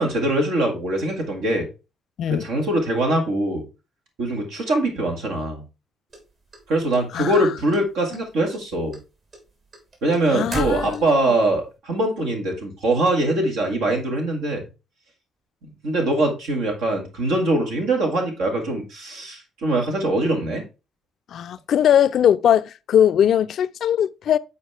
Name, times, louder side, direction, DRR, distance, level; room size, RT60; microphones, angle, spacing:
voice 1, 0.0-1.7 2.3-3.6 4.2-5.6 6.7-9.0 10.0-14.6 15.6-20.6, right 1 dB, 85° right, 1.7 m, -22 dB
sound 1, 6.1-7.4 7.7-8.2 8.5-11.3, right 3 dB, 55° right, 3.1 m, -35 dB
voice 2, 7.1-7.5 10.3-11.1 21.3-24.4, left 9 dB, 65° left, 0.3 m, -20 dB
8.0 x 4.2 x 3.3 m
supercardioid pair, 65°, 0 cm